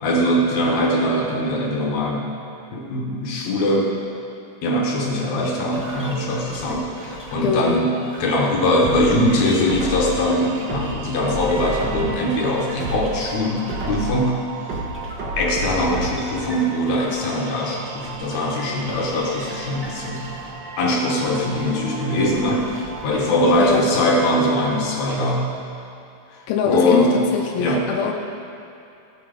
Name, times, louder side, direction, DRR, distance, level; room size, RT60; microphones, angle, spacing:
voice 1, 0.0-2.3 2.7-4.0 4.6-14.4 14.7-14.8 15.4-20.3 20.8-22.8 23.0-25.5 26.3-27.2 27.6-27.9, left 1 dB, 65° left, -1 dB, 2.1 m, -21 dB
sound 1, 5.7-20.9 21.2-24.2, equal, 10° right, 0.7 m, -38 dB
voice 2, 7.4-7.8 23.6-23.9 26.5-28.1, left 7 dB, 85° left, 1 dB, 2.5 m, -23 dB
sound 2, 8.8-10.2 10.7-12.3 12.7-14.2 14.7-16.3 16.7-16.8, right 1 dB, 50° right, 1.4 m, -29 dB
sound 3, 9.6-25.0, right 6 dB, 80° right, 2.4 m, -39 dB
17.0 x 7.1 x 5.0 m, 2.7 s
omnidirectional pair, 4.1 m